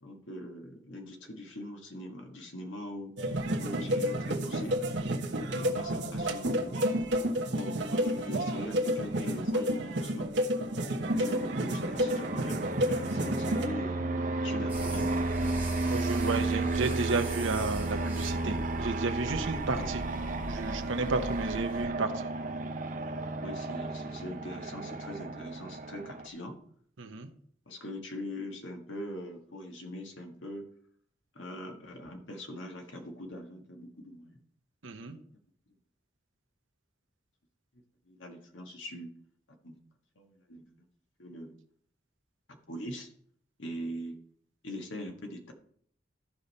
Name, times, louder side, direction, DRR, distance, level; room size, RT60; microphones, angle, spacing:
voice 1, 0.0-3.2 3.6-4.8 5.5-6.8 7.5-10.4 11.1-15.1 16.2-16.9 19.8-19.9 23.4-26.6 27.7-30.7 31.4-34.4 35.1-35.2 38.1-39.1 39.5-39.8 40.2-40.6 41.2-41.5 42.5-43.1 43.6-44.2 44.6-45.5, left 1 dB, 80° left, 3 dB, 1.6 m, -42 dB
sound 1, 3.2-13.7, equal, 65° right, 1.2 m, -30 dB
Fixed-wing aircraft airplane, 11.1-26.3, right 2 dB, 40° right, 0.7 m, -33 dB
sound 2, 14.7-21.9, right 1 dB, 10° right, 2.4 m, -42 dB
voice 2, 15.9-20.0 20.5-22.3 27.0-27.3 34.8-35.2, right 3 dB, 85° right, 7 dB, 0.9 m, -32 dB
14.0 x 5.3 x 4.2 m, 0.64 s
head